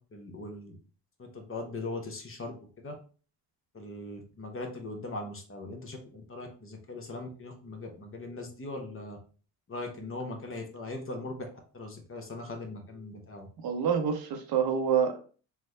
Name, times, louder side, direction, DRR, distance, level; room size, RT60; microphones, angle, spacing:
voice 1, 0.1-0.8 1.2-2.9 3.7-9.2 9.7-11.4 11.7-13.5, left 2 dB, 30° left, 3 dB, 0.9 m, -40 dB
voice 2, 13.6-15.2, right 7 dB, 55° right, 5 dB, 0.8 m, -27 dB
3.4 x 2.1 x 3.2 m, 0.39 s
supercardioid pair, 60°, 43 cm